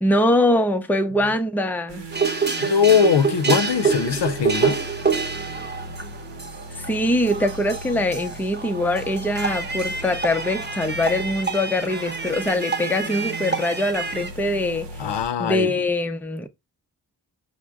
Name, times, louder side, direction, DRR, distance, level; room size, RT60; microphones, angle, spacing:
voice 1, 0.0-2.1 6.8-14.9 15.4-16.5, left 1 dB, 5° left, 0.5 m, -23 dB
sound 1, 1.9-15.3, right 2 dB, 80° right, 0.8 m, -38 dB
sound 2, 2.1-14.3, right 5 dB, 25° right, 0.8 m, -27 dB
voice 2, 2.6-4.8 15.0-15.7, left 7 dB, 80° left, 0.6 m, -20 dB
6.2 x 2.1 x 3.4 m
wide cardioid pair, 105°, 42 cm